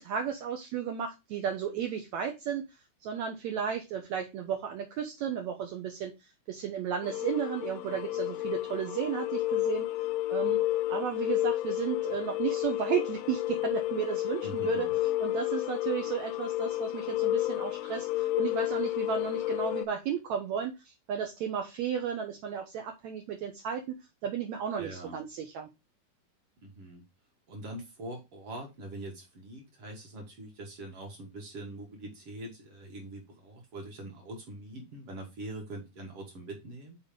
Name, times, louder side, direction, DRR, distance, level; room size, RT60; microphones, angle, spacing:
voice 1, 0.0-2.6 3.0-9.9 10.3-10.6 10.9-14.9 15.2-24.0 24.2-25.7, right 8 dB, 85° right, 4 dB, 1.6 m, -34 dB
sound 1, 7.0-19.9, left 16 dB, 80° left, 2.3 m, -31 dB
voice 2, 14.4-15.0 24.8-25.2 26.6-27.0 27.5-37.0, right 1 dB, 50° right, 1 dB, 1.9 m, -43 dB
5.9 x 4.1 x 5.0 m, 0.24 s
omnidirectional pair, 4.3 m